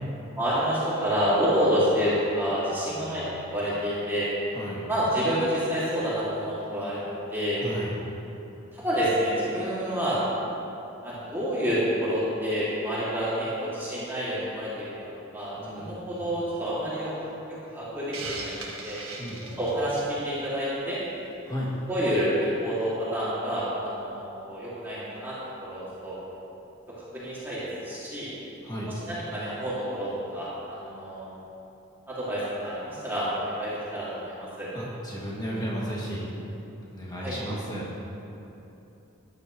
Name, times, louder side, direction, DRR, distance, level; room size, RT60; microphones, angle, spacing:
voice 1, 0.4-3.2 3.5-4.3 4.9-7.6 8.7-10.5 11.0-15.0 15.3-17.3 17.7-19.0 19.6-21.0 21.9-26.2 27.1-28.3 28.9-31.3 32.1-34.7 37.2-37.3, equal, 10° right, -11 dB, 2.7 m, -28 dB
voice 2, 2.9-3.5 4.5-4.8 7.6-7.9 15.6-16.2 19.2-19.6 21.4-21.7 28.6-28.9 34.7-36.2 36.9-37.9, equal, 20° left, -6 dB, 2.6 m, -34 dB
Hiss, 18.1-20.2, right 3 dB, 85° right, 1.9 m, -37 dB
15.0 x 11.0 x 3.3 m, 3.0 s
head